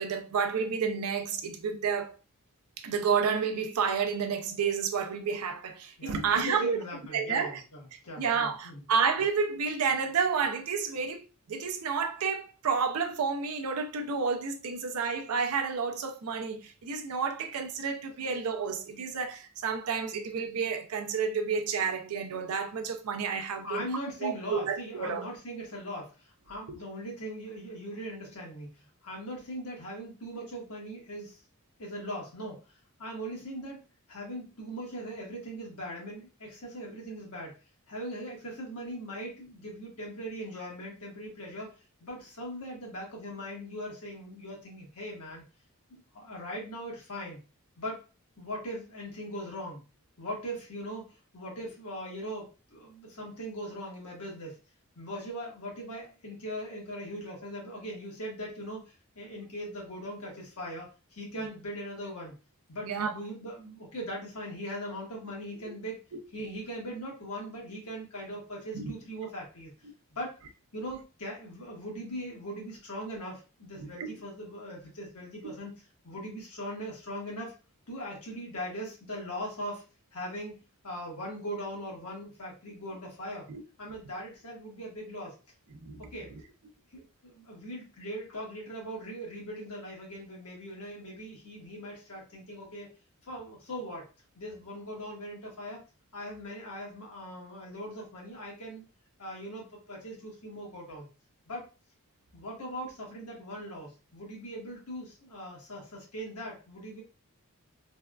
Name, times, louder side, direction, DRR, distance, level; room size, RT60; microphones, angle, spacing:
voice 1, 0.0-2.1 2.8-6.8 7.1-7.6 7.9-23.8 24.2-25.2 26.7-26.8 61.4-61.5 62.8-63.2 65.7-65.8 66.1-66.2 68.7-68.9 73.8-74.1 75.4-75.5 83.5-83.6 85.8-86.0 86.3-86.4, right 6 dB, 75° right, 0.5 m, -30 dB
voice 2, 6.0-8.8 23.6-26.1 26.5-28.7 29.0-31.4 31.8-32.6 33.0-33.8 34.1-37.5 37.9-41.7 42.0-45.4 45.9-47.4 47.8-48.0 48.4-49.8 50.2-54.6 54.9-58.8 59.1-62.3 62.7-66.0 66.3-69.7 70.1-70.3 70.7-75.7 76.0-77.5 77.9-79.8 80.1-80.6 80.8-83.5 83.8-85.3 86.1-86.3 86.9-92.9 93.3-94.1 94.3-95.8 96.1-98.8 99.2-101.1 101.5-101.6 102.3-107.0, equal, 75° left, 1.3 m, -40 dB
3.4 x 2.3 x 2.3 m
head